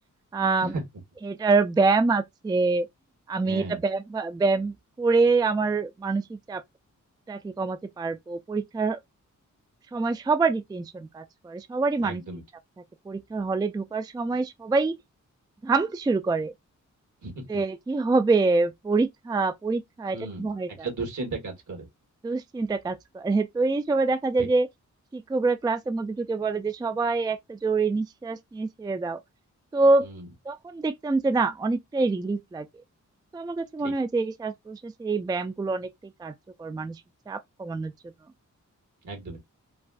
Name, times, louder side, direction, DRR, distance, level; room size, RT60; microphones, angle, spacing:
voice 1, 0.3-0.7 1.3-2.9 3.3-6.6 7.3-9.0 9.9-12.2 13.1-15.0 15.6-16.5 17.5-20.7 22.2-24.7 25.1-29.2 29.7-30.1 30.5-32.7 33.3-36.3 36.6-37.0 37.3-37.9, right 3 dB, 15° right, 0.3 m, -25 dB
voice 2, 3.4-3.8 12.0-12.4 17.2-17.6 20.1-20.5 20.8-21.9 24.4-24.5 30.0-30.3 33.8-33.9 39.0-39.4, right 3 dB, 70° right, 1.9 m, -35 dB
4.7 x 2.4 x 2.4 m
wide cardioid pair, 120°, 31 cm